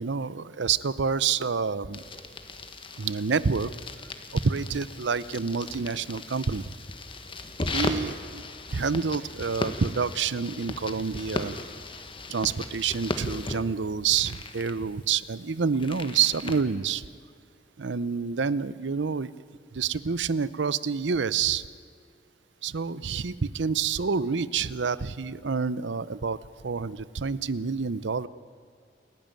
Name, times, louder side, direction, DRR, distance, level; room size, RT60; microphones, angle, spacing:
voice 1, 0.0-2.0 3.0-3.7 4.3-6.7 7.6-8.4 8.7-11.6 12.3-17.0 17.8-19.3 19.7-21.7 22.6-26.4 26.6-28.3, right 5 dB, 85° right, 17 dB, 0.7 m, -28 dB
sound 1, 1.9-16.6, left 2 dB, 30° left, 1.4 m, -37 dB
29.5 x 11.0 x 9.0 m, 2.2 s
head